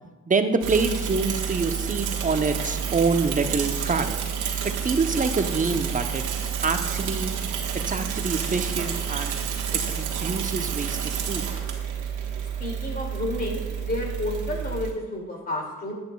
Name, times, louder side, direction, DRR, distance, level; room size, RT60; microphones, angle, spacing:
voice 1, 0.3-4.1 4.6-6.2 6.6-7.3 7.9-9.4 9.7-11.4, right 4 dB, 25° right, 7 dB, 0.8 m, -26 dB
Bicycle / Mechanisms, 0.6-14.9, right 8 dB, 90° right, 1.4 m, -29 dB
voice 2, 12.6-15.9, left 1 dB, 30° left, 0 dB, 2.6 m, -31 dB
11.0 x 10.5 x 2.3 m, 1.2 s
cardioid pair, 90°, 30 cm